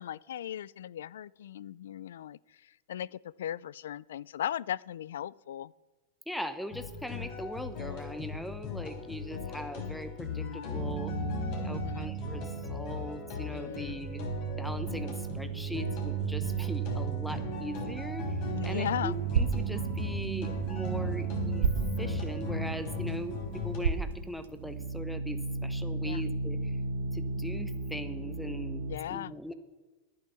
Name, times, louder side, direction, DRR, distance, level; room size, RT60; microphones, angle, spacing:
voice 1, 0.0-5.7 11.6-12.1 13.5-14.0 18.5-19.2 26.0-26.2 28.9-29.5, left 10 dB, 85° left, 24 dB, 0.3 m, -37 dB
voice 2, 6.3-11.1 11.6-14.3 14.6-18.4 18.6-21.7 22.0-26.8 27.1-29.5, equal, ahead, 11 dB, 1.0 m, -40 dB
sound 1, 6.7-23.8, left 6 dB, 55° left, 4.2 m, -38 dB
sound 2, 10.7-13.6 13.9-29.0, right 7 dB, 55° right, 1.3 m, -35 dB
sound 3, 18.1-25.0, right 6 dB, 80° right, 1.1 m, -35 dB
11.0 x 9.3 x 6.9 m, 1.2 s
hypercardioid pair, 120°, 0 cm